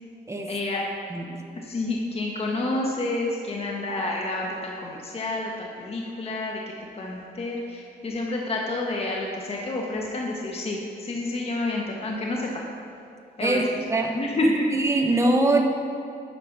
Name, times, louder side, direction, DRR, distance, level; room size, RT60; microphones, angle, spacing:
voice 1, 0.5-0.9 1.6-6.6 6.9-12.5 13.4-13.6 14.2-14.7, left 2 dB, 35° left, -1 dB, 1.0 m, -29 dB
voice 2, 13.4-14.2 14.7-15.6, right 2 dB, 15° right, 2 dB, 0.8 m, -23 dB
9.4 x 4.9 x 5.9 m, 2.5 s
cardioid pair, 110°, 18 cm